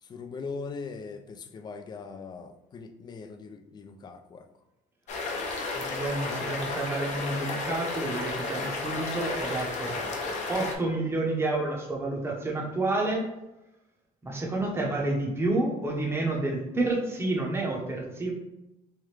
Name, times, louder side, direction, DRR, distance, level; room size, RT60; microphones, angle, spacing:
voice 1, 0.0-4.5, left 4 dB, 25° left, 7 dB, 0.4 m, -40 dB
sound 1, 5.1-10.7, left 3 dB, 45° left, 0.7 m, -32 dB
voice 2, 5.7-13.3 14.2-18.3, right 2 dB, 15° right, -1 dB, 0.8 m, -29 dB
3.4 x 3.3 x 3.2 m, 0.93 s
cardioid pair, 150°, 16 cm